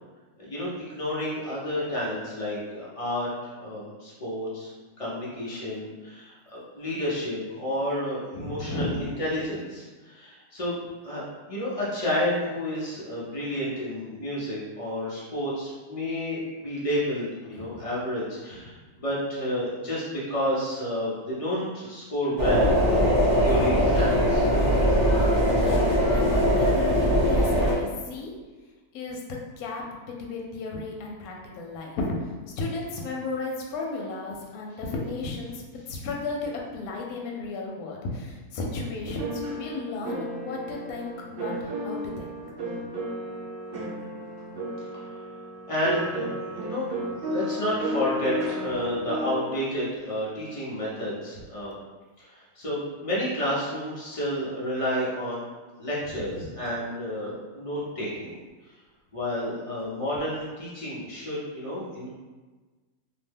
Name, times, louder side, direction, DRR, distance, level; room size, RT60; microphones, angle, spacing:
voice 1, 0.4-3.3 3.6-4.7 5.0-10.8 11.0-11.2 11.5-20.0 20.3-24.5 45.7-46.9 47.2-51.7 52.2-55.5 55.8-58.4 59.1-62.1, equal, 55° left, -8 dB, 0.3 m, -30 dB
voice 2, 8.3-9.1 17.6-17.8 25.6-25.8 26.1-28.3 28.9-32.0 32.6-42.3 56.3-56.5, left 3 dB, 75° left, -1 dB, 1.0 m, -34 dB
sound 1, 22.4-27.7, equal, 15° left, 0.8 m, -21 dB
sound 2, 39.1-49.6, right 1 dB, 70° right, 0.5 m, -34 dB
2.7 x 2.1 x 3.3 m, 1.3 s
omnidirectional pair, 1.6 m